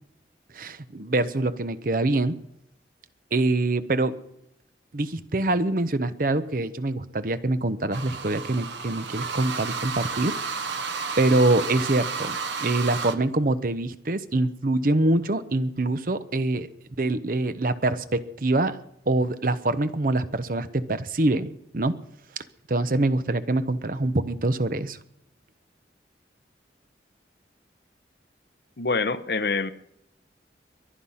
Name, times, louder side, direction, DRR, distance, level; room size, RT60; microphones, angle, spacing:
voice 1, 0.5-2.4 3.3-4.2 4.9-10.4 11.2-16.7 17.0-18.8 19.1-21.9 22.7-25.0, right 2 dB, 50° right, 0.8 m, -25 dB
sound 1, 7.9-13.2, right 5 dB, 75° right, 1.1 m, -32 dB
voice 2, 28.8-29.7, left 4 dB, 60° left, 0.8 m, -25 dB
22.5 x 10.0 x 5.7 m
head